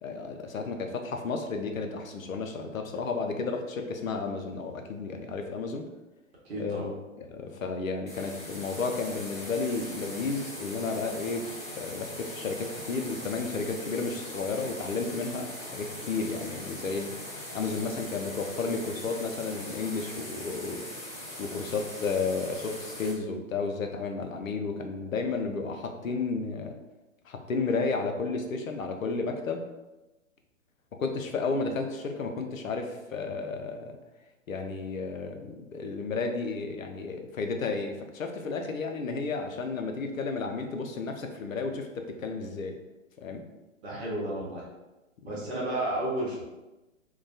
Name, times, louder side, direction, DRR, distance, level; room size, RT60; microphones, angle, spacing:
voice 1, 0.0-5.8 6.6-11.5 11.8-17.1 17.5-20.9 21.4-26.8 27.3-29.6 31.0-34.0 34.5-42.8 43.2-43.4 45.2-45.4, left 4 dB, 85° left, 4 dB, 0.5 m, -32 dB
voice 2, 6.4-6.9 43.8-44.6 45.2-46.4, right 1 dB, 50° right, -4 dB, 0.9 m, -32 dB
sound 1, 8.1-23.1, left 1 dB, 15° left, 1.1 m, -41 dB
2.2 x 2.1 x 2.5 m, 1.0 s
figure-of-eight pair, 120°, 40 cm